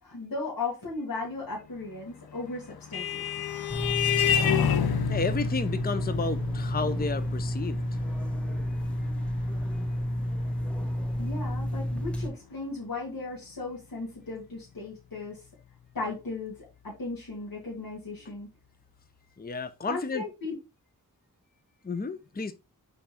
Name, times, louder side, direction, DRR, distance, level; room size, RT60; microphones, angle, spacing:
voice 1, 0.0-3.2 11.2-15.4 15.9-18.5 19.8-20.6, left 3 dB, 65° left, 2.3 m, -36 dB
Vehicle horn car horn honking, 2.3-11.3, left 9 dB, 85° left, 0.7 m, -31 dB
sound 1, 3.7-12.3, equal, 5° left, 1.1 m, -30 dB
voice 2, 5.1-7.8 19.4-20.2 21.8-22.5, left 4 dB, 25° left, 0.6 m, -32 dB
5.8 x 4.2 x 4.3 m
wide cardioid pair, 60°, 36 cm